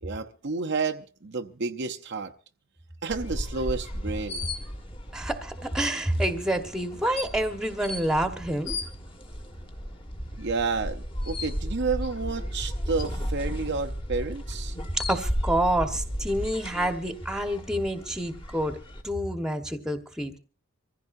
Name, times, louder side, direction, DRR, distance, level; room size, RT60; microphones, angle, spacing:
voice 1, 0.0-2.3 3.0-4.5 10.4-14.8, right 4 dB, 50° right, 0.8 m, -30 dB
sound 1, 3.1-19.0, equal, 25° left, 1.7 m, -35 dB
voice 2, 5.1-8.7 14.9-18.8 19.0-20.4, right 1 dB, 5° right, 1.3 m, -28 dB
25.5 x 15.5 x 2.6 m
head